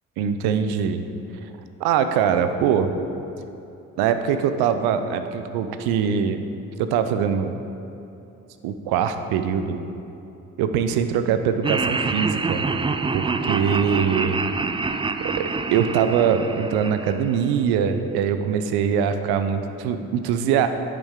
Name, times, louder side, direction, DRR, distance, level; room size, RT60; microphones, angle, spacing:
voice 1, 0.2-1.1 1.8-2.9 4.0-6.4 6.8-7.5 8.6-9.8 10.6-12.6 13.1-14.4 15.2-20.7, right 7 dB, 75° right, 9 dB, 0.7 m, -22 dB
Laughter, 11.6-17.8, right 4 dB, 15° right, 0.4 m, -27 dB
10.0 x 7.4 x 3.7 m, 2.8 s
hypercardioid pair, 45°, 38 cm